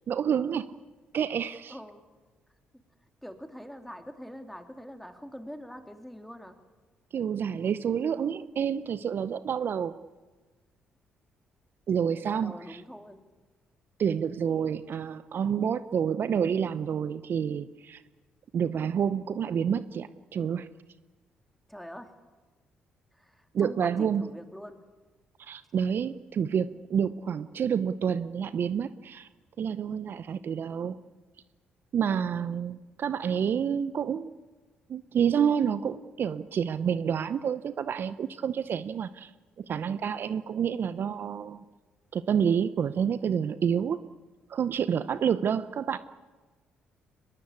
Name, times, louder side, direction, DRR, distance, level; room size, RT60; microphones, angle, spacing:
voice 1, 0.1-0.7 1.1-1.7 7.1-10.0 11.9-12.8 14.0-18.0 18.5-20.7 23.5-24.3 25.4-29.3 29.6-31.0 31.9-34.3 34.9-39.3 39.6-41.6 42.1-44.0 44.5-46.0, right 7 dB, 55° right, 14 dB, 0.8 m, -28 dB
voice 2, 1.7-2.0 3.2-6.6 12.2-13.2 21.7-22.1 23.1-24.8 32.1-32.5 45.0-45.3, equal, ahead, 6 dB, 3.3 m, -44 dB
23.0 x 21.0 x 8.4 m, 1.3 s
hypercardioid pair, 50°, 4 cm